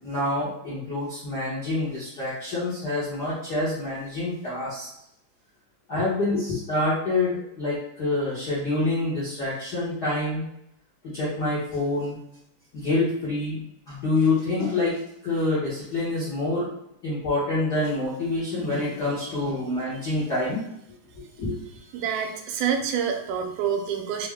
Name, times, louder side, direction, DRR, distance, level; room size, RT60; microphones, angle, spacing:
voice 1, 0.0-4.9 5.9-10.5 11.0-12.2 12.7-16.7 17.0-20.6 21.4-21.6, left 2 dB, 85° left, -8 dB, 0.8 m, -27 dB
voice 2, 21.9-24.3, right 7 dB, 80° right, 3 dB, 2.1 m, -27 dB
5.2 x 2.1 x 3.5 m, 0.81 s
omnidirectional pair, 3.8 m